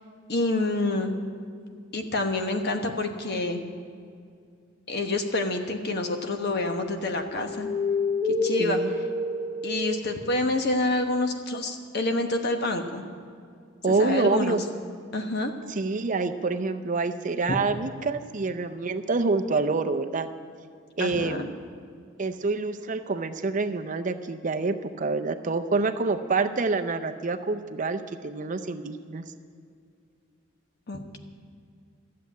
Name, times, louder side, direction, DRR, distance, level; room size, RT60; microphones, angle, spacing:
voice 1, 0.3-1.1 1.9-3.6 4.9-7.7 8.4-9.0 9.6-13.0 13.9-14.6 15.1-15.5 21.0-21.5 30.9-31.2, left 2 dB, 55° left, 5 dB, 1.2 m, -27 dB
sound 1, 6.4-6.8 7.1-10.2, left 2 dB, 10° right, 1.0 m, -29 dB
voice 2, 8.6-8.9 13.8-14.6 15.7-20.3 21.0-21.5 22.2-29.2, right 3 dB, 40° right, 8 dB, 0.5 m, -27 dB
13.0 x 7.6 x 9.3 m, 2.3 s
head